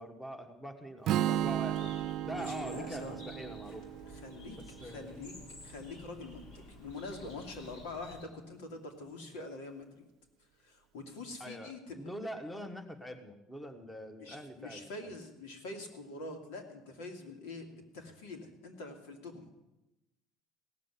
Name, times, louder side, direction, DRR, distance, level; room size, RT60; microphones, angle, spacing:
voice 1, 0.0-1.9 2.2-3.9 4.8-5.2 11.4-15.1, equal, 10° left, 8 dB, 1.4 m, -44 dB
Strum, 1.0-5.2, right 12 dB, 55° right, 0.5 m, -35 dB
Bird, 1.3-8.2, left 1 dB, 65° left, 3.7 m, -52 dB
voice 2, 2.4-3.3 4.1-5.4 5.6-10.1 10.6-12.1 14.2-19.5, left 2 dB, 85° left, 5 dB, 2.6 m, -45 dB
16.5 x 7.5 x 9.8 m, 0.97 s
supercardioid pair, 115°, 0 cm